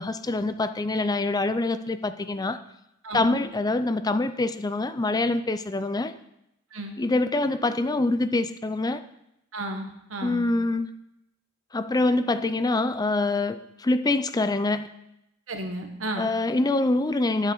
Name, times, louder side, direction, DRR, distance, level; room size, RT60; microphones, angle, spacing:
voice 1, 0.0-2.6 3.1-6.1 7.0-9.0 10.2-10.9 11.7-14.9 16.2-17.5, left 2 dB, 20° left, 11 dB, 0.4 m, -25 dB
voice 2, 3.0-3.4 6.7-7.0 9.5-10.5 15.5-16.3, right 1 dB, 70° right, 4 dB, 1.6 m, -33 dB
12.5 x 8.1 x 4.6 m, 0.83 s
head